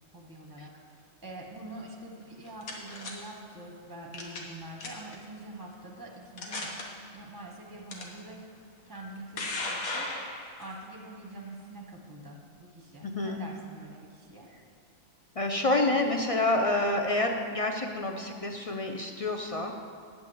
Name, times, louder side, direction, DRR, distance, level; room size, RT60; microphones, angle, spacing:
voice 1, 0.1-6.7 7.1-8.4 8.8-10.1 10.3-14.5, right 2 dB, 15° right, 0 dB, 0.9 m, -45 dB
sound 1, 2.2-3.1 4.1-4.5 4.8-5.2 5.8-5.9 6.4-6.8 7.9-8.0 9.0-10.7, left 2 dB, 80° left, 1.8 m, -35 dB
voice 2, 13.0-13.4 15.4-19.7, left 2 dB, 50° left, 3 dB, 0.4 m, -28 dB
9.9 x 6.1 x 7.8 m, 2.2 s
omnidirectional pair, 1.5 m